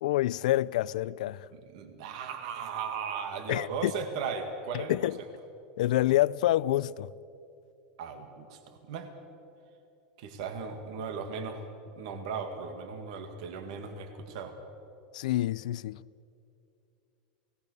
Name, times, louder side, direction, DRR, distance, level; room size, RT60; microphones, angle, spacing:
voice 1, 0.0-1.5 3.5-3.9 4.7-5.2 5.8-7.1 15.1-16.0, left 15 dB, 70° left, 0.4 m, -27 dB
voice 2, 1.5-5.0 8.0-9.1 10.2-11.6 12.0-14.6, right 5 dB, 55° right, 2.2 m, -37 dB
28.5 x 18.0 x 6.8 m
supercardioid pair, 175°, 4 cm